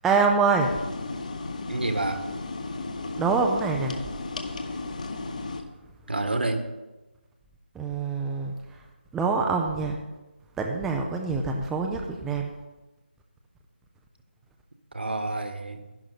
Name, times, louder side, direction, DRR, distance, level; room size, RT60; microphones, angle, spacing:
voice 1, 0.0-0.7 3.2-4.0 7.8-8.5 9.1-10.0 10.6-12.5, right 4 dB, 5° right, 1 dB, 0.4 m, -25 dB
sound 1, 0.6-5.6, left 3 dB, 40° left, 1.1 m, -34 dB
voice 2, 1.7-2.2 6.1-6.7 14.9-15.9, right 2 dB, 70° right, 7 dB, 1.5 m, -28 dB
11.5 x 11.0 x 4.1 m, 1.1 s
figure-of-eight pair, 160°, 6 cm